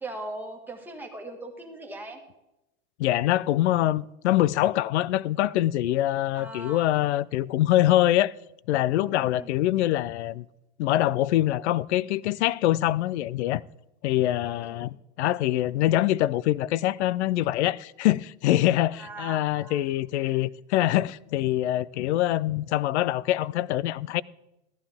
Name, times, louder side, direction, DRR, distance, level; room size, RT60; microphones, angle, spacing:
voice 1, 0.0-2.2 6.3-7.0 9.1-9.5 14.4-14.9 18.9-19.8 20.2-20.4, right 2 dB, 5° right, 1.6 m, -40 dB
voice 2, 3.0-8.3 8.7-10.5 10.8-13.6 14.0-24.2, left 14 dB, 75° left, 0.5 m, -24 dB
13.5 x 11.5 x 3.5 m
supercardioid pair, 130°, 34 cm